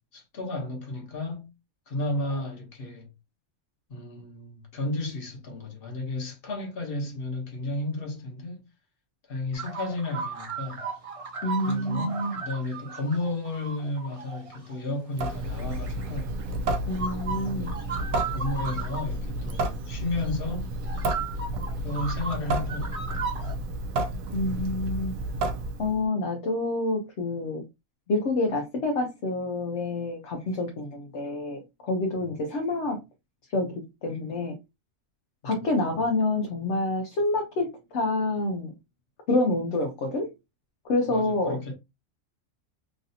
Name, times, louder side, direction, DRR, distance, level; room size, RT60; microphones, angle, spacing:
voice 1, 0.1-1.5 1.9-3.1 3.9-8.7 9.3-10.8 11.6-16.3 17.3-17.8 18.3-20.7 21.8-23.0 35.4-35.8 41.1-41.7, left 2 dB, 45° left, 1.2 m, -33 dB
sound 1, 9.5-14.8 15.4-16.5 16.9-19.1 19.5-19.6 20.2-20.3 20.8-23.5, right 5 dB, 35° right, 0.6 m, -36 dB
voice 2, 11.4-12.3 16.9-17.7 24.3-25.2 25.8-27.6 28.1-33.0 33.5-34.6 35.4-38.7 39.3-40.3 40.8-41.6, left 2 dB, 60° left, 0.9 m, -27 dB
Water tap faucet / Sink (filling or washing) / Drip, 15.1-26.0, right 1 dB, 80° right, 1.0 m, -31 dB
3.1 x 2.6 x 2.7 m
omnidirectional pair, 1.4 m